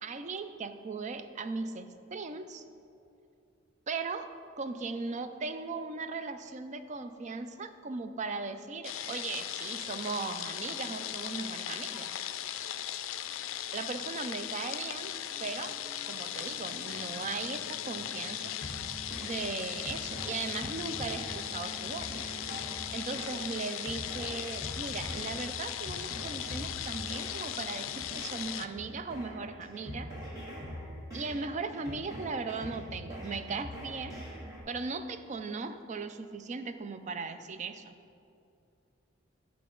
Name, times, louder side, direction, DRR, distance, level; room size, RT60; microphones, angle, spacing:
voice 1, 0.0-2.6 3.9-4.3 4.6-12.1 13.7-15.1 15.4-15.8 16.1-18.5 19.2-22.2 22.9-30.1 31.1-34.2 34.7-37.9, right 4 dB, 40° right, 10 dB, 0.4 m, -38 dB
sound 1, 8.8-28.7, left 11 dB, 80° left, 0.4 m, -38 dB
sound 2, 15.3-23.0, equal, 25° left, 0.8 m, -51 dB
sound 3, 18.6-34.6, equal, 15° right, 1.7 m, -44 dB
13.0 x 4.6 x 3.8 m, 2.6 s
head